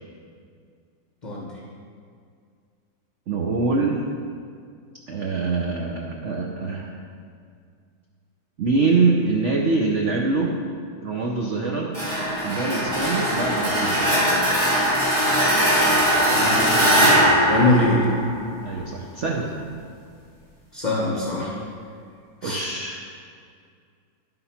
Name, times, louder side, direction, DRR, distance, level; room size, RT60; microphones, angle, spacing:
voice 1, 3.3-4.0 5.1-6.9 8.6-10.5 11.0-11.9 12.4-14.1 18.6-19.5 22.4-23.0, right 3 dB, 60° right, -1 dB, 0.8 m, -24 dB
sound 1, 11.9-18.7, equal, 35° right, 2.2 m, -20 dB
voice 2, 16.3-17.2 17.5-18.1 20.7-21.5 22.4-22.6, left 2 dB, 35° left, -3 dB, 0.7 m, -23 dB
11.0 x 3.7 x 5.6 m, 2.2 s
omnidirectional pair, 1.9 m